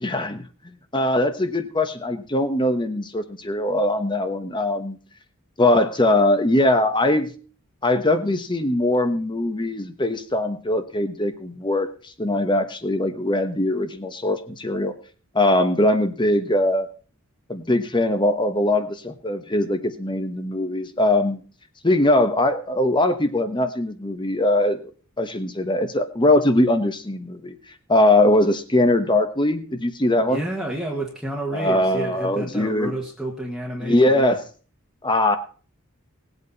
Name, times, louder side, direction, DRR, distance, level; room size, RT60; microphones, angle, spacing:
voice 1, 0.0-0.4 0.9-5.0 5.6-7.3 7.8-11.9 12.2-14.9 15.3-16.9 17.5-21.4 21.8-24.9 25.2-27.5 27.9-30.4 31.5-32.9 33.8-34.4 35.0-35.4, left 1 dB, 20° left, 9 dB, 1.1 m, -21 dB
voice 2, 30.2-34.4, right 1 dB, ahead, -2 dB, 1.5 m, -30 dB
19.0 x 8.2 x 4.1 m, 0.39 s
head